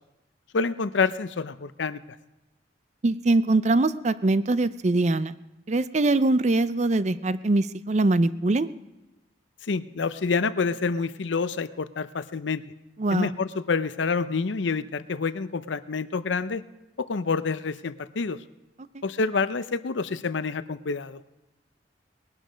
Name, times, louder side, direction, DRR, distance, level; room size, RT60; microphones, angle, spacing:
voice 1, 0.5-2.0 9.6-12.6 13.1-16.6 17.0-18.4 19.0-21.2, left 4 dB, 85° left, 14 dB, 0.6 m, -27 dB
voice 2, 3.0-5.3 5.7-8.7 13.0-13.3 18.9-19.0, right 2 dB, 40° right, 15 dB, 0.5 m, -23 dB
20.0 x 12.0 x 5.1 m, 1.0 s
head